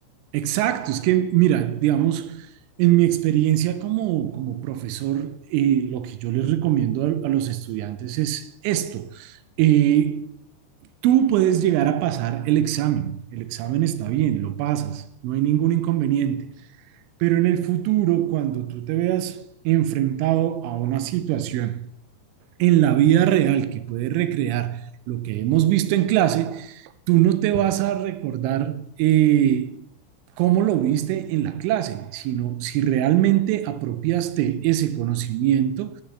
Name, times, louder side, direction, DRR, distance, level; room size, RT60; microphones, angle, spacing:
voice 1, 0.3-2.5 2.8-10.4 11.0-16.5 17.2-21.9 22.6-29.9 30.4-36.0, right 12 dB, 80° right, 3.0 m, -22 dB
14.0 x 10.5 x 3.3 m
omnidirectional pair, 5.7 m